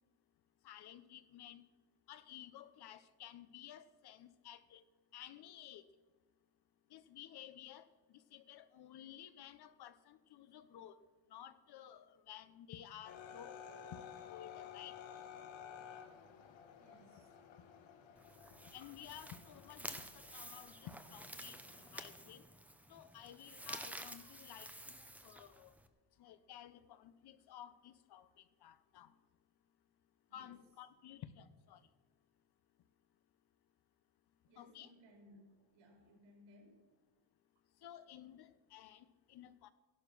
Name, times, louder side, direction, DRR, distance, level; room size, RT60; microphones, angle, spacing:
voice 1, 0.6-1.6 2.1-4.8 5.1-5.8 6.9-11.0 11.3-13.6 13.9-15.0 18.7-21.5 21.9-22.4 22.9-25.7 26.2-29.1 30.3-31.8 34.6-34.9 37.8-39.7, left 11 dB, 55° left, 13 dB, 0.9 m, -54 dB
sound 1, 13.0-22.2, left 8 dB, 80° left, 2.0 m, -54 dB
voice 2, 16.8-17.4 30.3-30.7 34.5-36.9, left 1 dB, 80° right, 2 dB, 4.7 m, -63 dB
sound 2, 18.2-25.9, right 1 dB, 5° right, 0.8 m, -51 dB
14.5 x 12.0 x 6.1 m, 1.3 s
cardioid pair, 145°, 46 cm